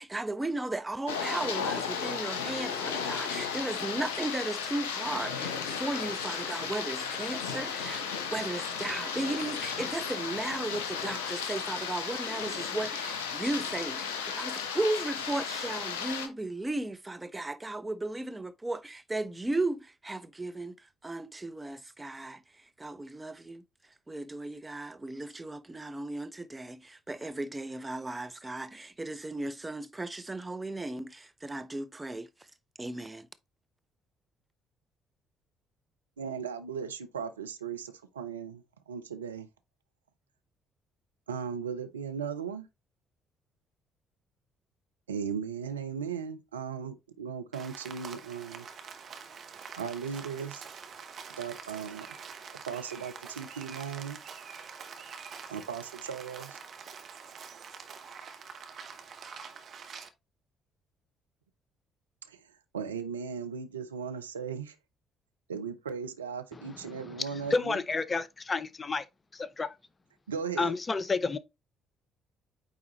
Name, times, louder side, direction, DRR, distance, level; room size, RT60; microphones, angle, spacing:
voice 1, 0.0-23.6 24.1-32.3 32.8-33.3, right 2 dB, 15° right, 0.7 m, -35 dB
sound 1, 1.1-16.3, left 6 dB, 70° left, 1.0 m, -34 dB
voice 2, 36.2-39.5 41.3-42.7 45.1-48.7 49.8-50.6 51.4-52.1 52.7-54.2 55.5-56.6 62.2-62.4 62.7-64.8 65.5-67.8 70.3-70.8, right 6 dB, 80° right, 0.5 m, -37 dB
Rain, 47.5-60.1, right 6 dB, 45° right, 1.0 m, -46 dB
voice 3, 67.5-69.0 69.3-69.8 70.6-71.4, left 4 dB, 30° left, 0.6 m, -30 dB
8.9 x 3.6 x 3.0 m
figure-of-eight pair, 45°, 0 cm